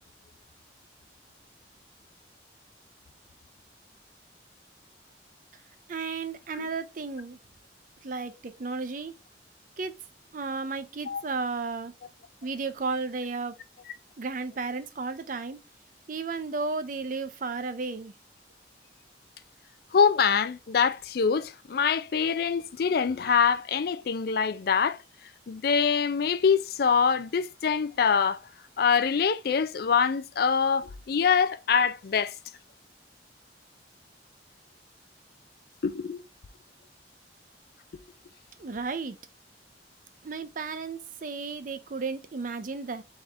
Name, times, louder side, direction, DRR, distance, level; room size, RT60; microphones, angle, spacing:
voice 1, 5.9-7.4 8.0-9.1 9.8-9.9 10.3-11.9 12.4-13.5 14.2-15.6 16.1-18.1 38.6-39.2 40.2-43.0, right 4 dB, 50° right, 0.5 m, -33 dB
voice 2, 19.9-25.0 25.5-28.4 28.8-32.3 35.8-36.2, left 6 dB, 60° left, 0.4 m, -24 dB
3.6 x 3.5 x 4.0 m
head